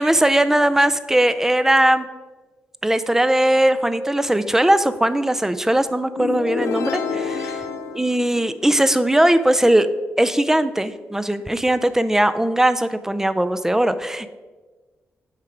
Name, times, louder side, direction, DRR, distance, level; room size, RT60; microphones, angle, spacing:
voice 1, 0.0-2.1 2.8-7.6 7.9-9.9 10.2-14.3, right 1 dB, 10° right, 12 dB, 0.5 m, -19 dB
sound 1, 6.2-9.0, left 6 dB, 85° left, 0.5 m, -28 dB
10.0 x 3.6 x 4.6 m, 1.3 s
supercardioid pair, 50°, 5 cm